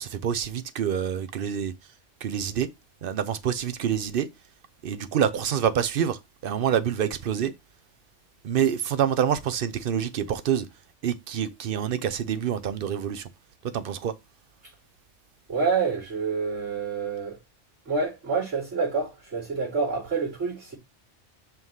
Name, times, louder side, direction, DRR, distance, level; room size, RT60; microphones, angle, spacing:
voice 1, 0.0-1.7 2.2-2.7 3.0-4.3 4.8-7.5 8.4-10.7 11.0-13.2 13.6-14.1, right 8 dB, 55° right, 0.7 m, -27 dB
voice 2, 15.5-17.4 17.9-20.8, right 4 dB, 80° right, 3.5 m, -27 dB
5.7 x 3.1 x 5.4 m
omnidirectional pair, 1.2 m